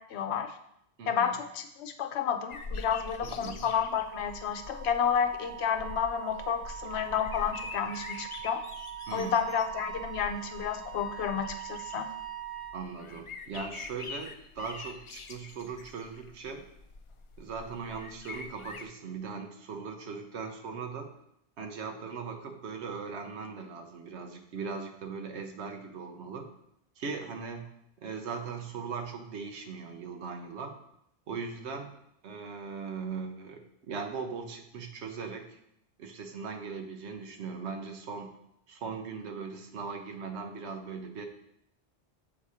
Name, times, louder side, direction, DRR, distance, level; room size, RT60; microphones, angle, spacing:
voice 1, 0.1-0.5 1.1-8.6 9.1-12.1, left 7 dB, 85° left, 7 dB, 0.9 m, -31 dB
voice 2, 1.0-1.4 3.3-3.7 9.1-9.4 12.7-16.7 17.4-21.1 21.6-26.5 27.0-27.7 28.0-30.8 31.3-31.9 32.2-35.6 36.0-38.4 38.7-41.3, right 5 dB, 85° right, 5 dB, 1.1 m, -39 dB
sound 1, 2.5-18.9, left 4 dB, 55° left, 0.3 m, -45 dB
Wind instrument woodwind instrument, 3.4-12.8, right 12 dB, ahead, 0.7 m, -43 dB
7.3 x 2.8 x 4.8 m, 0.76 s
omnidirectional pair, 1.1 m